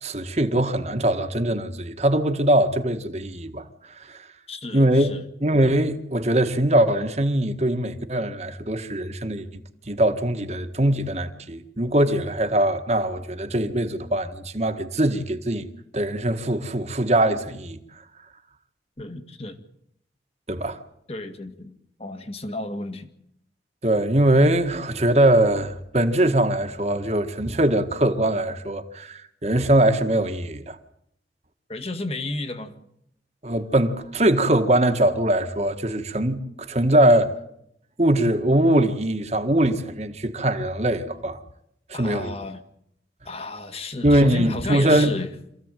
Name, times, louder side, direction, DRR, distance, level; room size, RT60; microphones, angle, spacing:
voice 1, 0.0-3.7 4.0-4.3 4.7-5.1 5.4-9.5 9.9-15.7 15.9-17.8 20.5-20.8 23.8-30.8 33.4-37.3 38.0-41.4 41.9-42.3 44.0-45.1, right 1 dB, 35° right, 1.8 m, -22 dB
voice 2, 4.5-5.2 19.0-19.6 21.1-21.7 22.0-23.1 31.7-32.9 41.9-42.6 43.3-45.3, left 2 dB, 35° left, 2.1 m, -33 dB
27.0 x 15.5 x 9.2 m
head